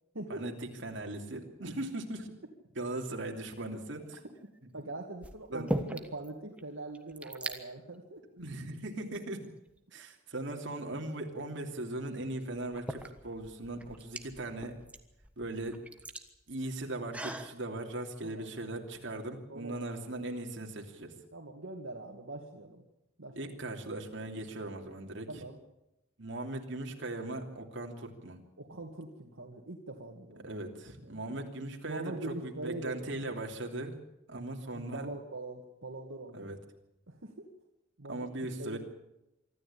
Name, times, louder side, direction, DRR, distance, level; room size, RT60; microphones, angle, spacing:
voice 1, 0.3-2.3 2.7-4.2 5.5-5.7 8.4-9.5 9.9-14.8 15.4-15.8 16.5-21.1 23.3-25.4 26.2-28.4 30.4-34.0 34.3-35.1 36.3-36.6 38.1-38.8, right 2 dB, 65° right, 2 dB, 3.0 m, -39 dB
sound 1, 4.0-4.4 5.2-6.3 6.6-6.7 6.9-7.6 8.4-8.5 9.1-10.0 11.7-11.8 12.5-17.5, right 1 dB, 5° right, 1.4 m, -40 dB
voice 2, 4.7-8.2 18.2-18.5 19.5-20.3 21.3-22.8 23.2-23.4 25.3-25.6 28.6-30.5 31.0-31.2 31.9-33.0 34.3-36.5 37.1-37.5 38.0-38.8, right 2 dB, 80° right, 1 dB, 2.2 m, -43 dB
25.0 x 13.5 x 8.7 m, 0.87 s
head